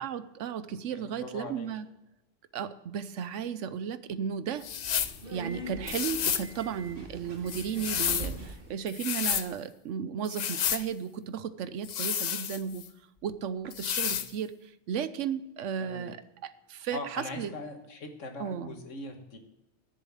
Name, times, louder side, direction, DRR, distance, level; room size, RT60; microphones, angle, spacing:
voice 1, 0.0-1.9 2.5-4.7 5.3-12.9 13.2-16.2 16.4-17.5 18.4-18.7, right 8 dB, 90° right, 14 dB, 1.0 m, -34 dB
voice 2, 0.7-1.7 14.0-14.2 15.8-16.1 16.9-19.4, left 2 dB, 90° left, 4 dB, 1.9 m, -41 dB
Subway metro underground, 4.5-8.8, right 1 dB, 50° right, 1.6 m, -42 dB
sound 1, 4.6-5.2 5.9-6.5 7.5-8.3 8.9-9.5 10.3-10.9 11.8-12.9 13.7-14.3, left 9 dB, 60° left, 0.4 m, -31 dB
10.5 x 7.5 x 7.1 m, 0.97 s
omnidirectional pair, 1.2 m